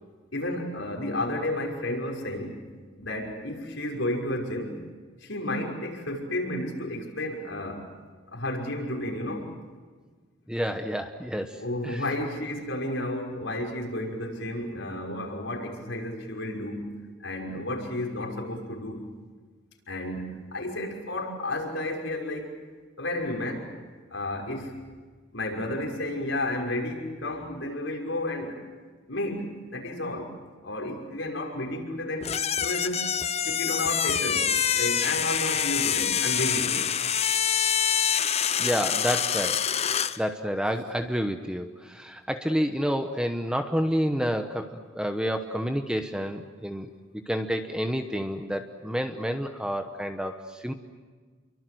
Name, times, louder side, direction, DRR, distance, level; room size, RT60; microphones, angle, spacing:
voice 1, 0.3-2.6 3.0-4.8 5.2-7.8 8.3-9.5 11.6-16.9 17.2-19.0 19.9-22.5 23.0-23.7 24.1-24.8 25.3-28.6 29.1-30.3 30.6-33.1 33.4-34.5 34.7-36.8, left 1 dB, 80° left, 1 dB, 6.0 m, -32 dB
voice 2, 10.5-12.0 38.6-39.6 40.2-46.9 47.3-50.7, equal, 5° right, 6 dB, 1.1 m, -29 dB
sound 1, 32.2-40.2, left 8 dB, 35° left, 0.8 m, -26 dB
29.5 x 24.0 x 7.9 m, 1.5 s
head